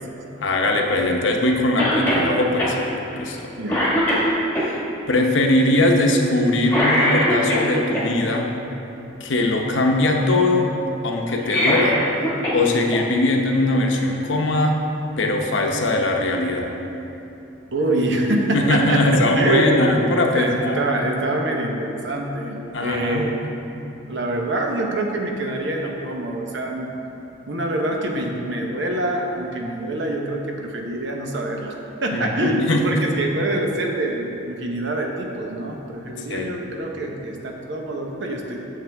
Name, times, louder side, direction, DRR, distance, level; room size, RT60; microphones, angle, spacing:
voice 1, 0.4-2.8 3.2-3.5 4.6-4.8 5.1-8.5 9.2-10.7 11.0-12.0 12.5-14.8 15.2-16.7 18.5-20.8 22.7-23.3 32.1-32.8 36.1-36.5, left 2 dB, 75° left, 2 dB, 0.8 m, -20 dB
Cough, 1.8-2.3 2.6-2.7 3.2-3.4 3.7-4.7 6.7-8.0 11.3-12.6 12.9-13.0 14.1-14.2, equal, 10° left, 1.4 m, -21 dB
voice 2, 3.6-3.9 17.7-19.8 20.4-23.4 24.0-26.9 27.5-38.6, right 1 dB, 65° right, 1 dB, 0.9 m, -25 dB
9.0 x 6.7 x 3.5 m, 2.9 s
head